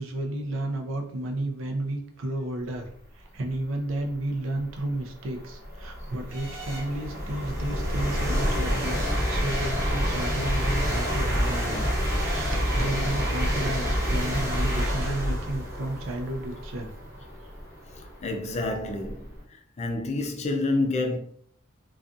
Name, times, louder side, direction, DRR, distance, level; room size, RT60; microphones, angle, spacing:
voice 1, 0.0-2.9 3.1-11.8 12.1-16.9, right 1 dB, 70° right, 0.5 m, -32 dB
sound 1, 3.9-4.0 4.6-19.4, equal, 15° right, 0.9 m, -28 dB
voice 2, 17.9-19.3 19.8-21.2, left 2 dB, 35° left, 0.4 m, -28 dB
2.5 x 2.3 x 2.4 m
head